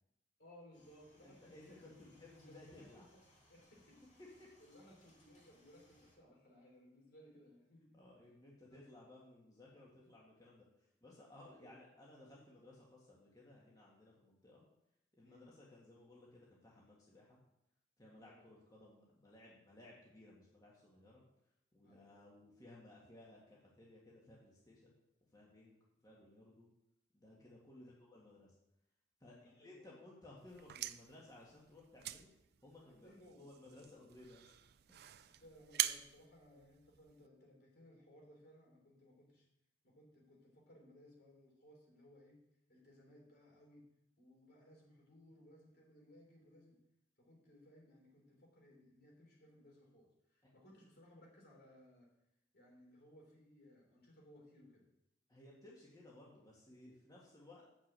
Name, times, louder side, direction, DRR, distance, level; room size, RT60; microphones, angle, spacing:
voice 1, 0.4-2.1 2.5-3.2 3.5-4.0 4.6-8.3 8.7-8.9 11.3-11.8 15.2-15.5 18.2-18.5 21.8-22.2 27.7-27.9 29.2-30.0 32.9-33.5 33.9-34.0 35.3-39.5 39.8-42.4 42.7-43.8 44.2-46.8 47.2-52.1 52.5-54.9, equal, 60° left, -1 dB, 3.5 m, -62 dB
sound 1, 0.7-6.2, equal, 40° left, 3.0 m, -69 dB
voice 2, 1.2-3.1 4.4-4.5 7.9-10.7 11.0-14.6 15.1-17.4 18.0-21.2 21.7-24.9 25.3-26.7 27.1-28.5 29.2-32.3 32.6-34.5 35.3-35.4 55.3-57.7, left 1 dB, 20° left, -5 dB, 1.8 m, -59 dB
sound 2, 30.4-37.3, right 13 dB, 60° right, 0.4 m, -44 dB
7.1 x 6.1 x 7.6 m, 0.84 s
head